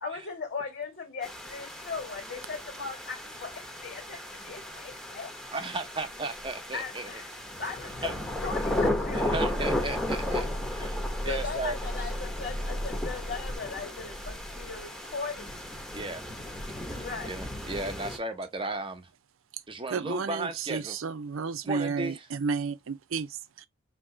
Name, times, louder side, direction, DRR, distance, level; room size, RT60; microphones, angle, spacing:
voice 1, 0.0-5.3 6.7-7.3 7.6-9.3 11.2-15.5 16.9-17.4, left 4 dB, 50° left, 1.8 m, -38 dB
sound 1, 1.2-18.2, left 1 dB, 5° left, 1.1 m, -35 dB
voice 2, 5.5-7.1 8.0-8.1 9.1-11.8 15.9-16.2 17.0-19.1 19.7-21.0 21.6-22.3, right 2 dB, 25° right, 0.9 m, -35 dB
sound 2, 8.3-13.6, equal, 75° left, 1.3 m, -35 dB
voice 3, 19.9-23.7, right 5 dB, 75° right, 0.5 m, -32 dB
5.2 x 2.9 x 3.2 m
head